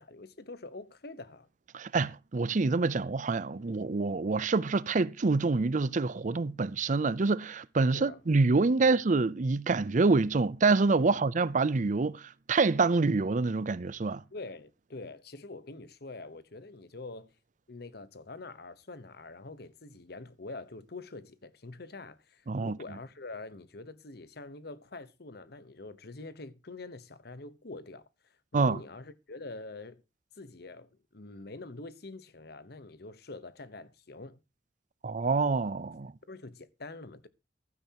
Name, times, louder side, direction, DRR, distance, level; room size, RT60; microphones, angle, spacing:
voice 1, 0.0-1.5 7.9-8.2 8.8-9.0 11.0-11.2 14.3-17.3 17.7-30.0 30.4-34.4 36.3-37.3, left 3 dB, 65° left, 1.1 m, -45 dB
voice 2, 1.7-14.2 22.5-22.8 28.5-28.8 35.0-36.1, right 3 dB, 45° right, 0.5 m, -26 dB
15.0 x 12.5 x 2.9 m
head